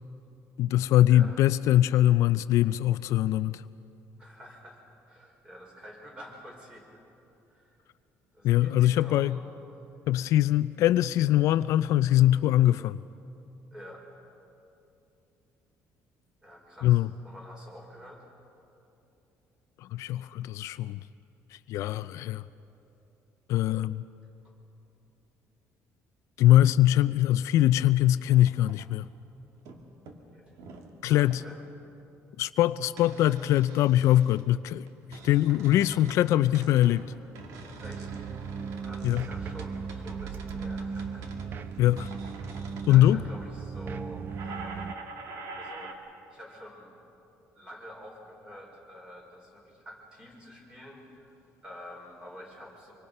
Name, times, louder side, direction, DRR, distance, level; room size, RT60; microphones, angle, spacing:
voice 1, 0.6-3.6 8.4-9.4 10.1-13.0 16.8-17.1 19.8-21.0 21.7-22.4 23.5-24.0 26.4-29.1 31.0-31.4 32.4-37.1 39.0-39.2 41.8-42.1 42.9-43.2, left 13 dB, 70° left, 14 dB, 0.4 m, -22 dB
voice 2, 4.2-7.0 7.5-7.8 8.3-9.4 13.7-14.1 16.4-18.3 30.3-30.5 31.0-31.6 37.8-38.1 38.8-41.8 42.9-44.8 45.5-45.9 46.3-46.9 47.5-52.9, equal, 15° right, -1 dB, 4.9 m, -48 dB
sound 1, 28.3-29.2 29.6-29.8 30.1-30.9 31.3-31.7 33.0-34.4 34.9-36.3 36.5-43.1 44.3-45.9, right 3 dB, 75° right, 2.1 m, -46 dB
sound 2, 37.8-44.9, right 5 dB, 40° right, 0.7 m, -37 dB
25.0 x 25.0 x 5.5 m, 2.8 s
cardioid pair, 160°, 5 cm